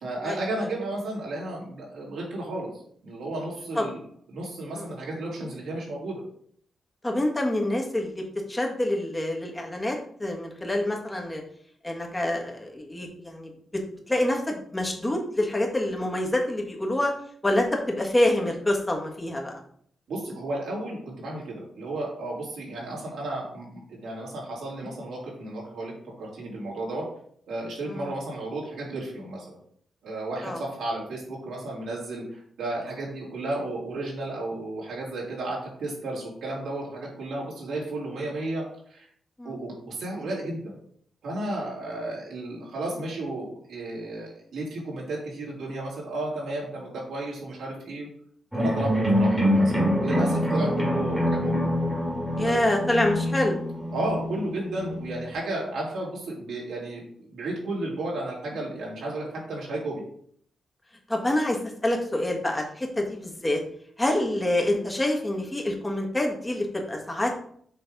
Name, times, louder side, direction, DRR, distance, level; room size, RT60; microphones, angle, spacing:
voice 1, 0.0-4.0 4.3-6.2 20.1-27.1 27.5-29.6 30.0-39.1 39.4-40.7 41.2-48.1 48.5-51.7 52.4-52.5 53.9-60.0, right 2 dB, 85° right, -5 dB, 3.0 m, -33 dB
voice 2, 7.0-11.4 11.8-17.1 17.4-19.6 27.9-28.1 30.4-30.6 39.4-39.5 49.0-49.2 50.6-51.0 52.3-53.6 61.1-63.6 64.0-67.4, left 1 dB, 15° left, 1 dB, 1.6 m, -27 dB
sound 1, 48.5-55.3, equal, 5° right, 1.8 m, -25 dB
6.7 x 3.4 x 5.3 m, 0.62 s
cardioid pair, 90°, 0 cm